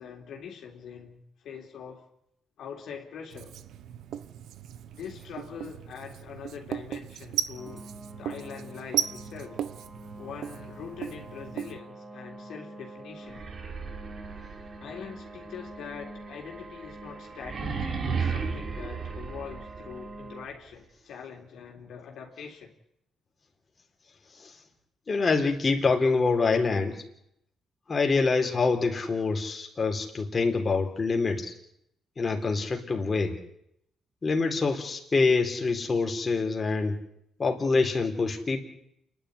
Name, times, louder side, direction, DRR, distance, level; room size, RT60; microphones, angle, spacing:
voice 1, 0.0-2.1 2.6-3.6 5.0-7.9 8.2-9.6 10.2-13.4 14.8-17.8 18.1-22.7, left 7 dB, 75° left, 3.6 m, -43 dB
Writing, 3.3-11.8, right 10 dB, 75° right, 1.1 m, -36 dB
sound 1, 7.5-20.5, right 1 dB, 15° right, 3.5 m, -46 dB
sound 2, 13.2-20.1, right 5 dB, 50° right, 3.5 m, -35 dB
voice 2, 25.1-27.0 27.9-31.5 32.2-33.4 34.2-37.0 37.4-38.6, left 4 dB, 35° left, 4.0 m, -25 dB
28.5 x 11.5 x 9.9 m
cardioid pair, 90°, 0 cm